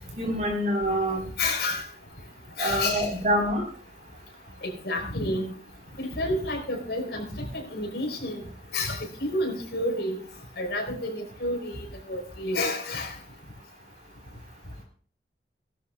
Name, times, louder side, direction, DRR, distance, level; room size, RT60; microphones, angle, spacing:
voice 1, 0.2-1.2 2.6-3.6, equal, 45° right, 2 dB, 4.4 m, -25 dB
voice 2, 1.4-1.8 2.6-3.1 4.6-5.6 6.0-8.4 8.7-10.2 10.6-13.1, left 1 dB, 75° left, 2 dB, 4.4 m, -30 dB
18.5 x 12.5 x 2.5 m, 0.42 s
head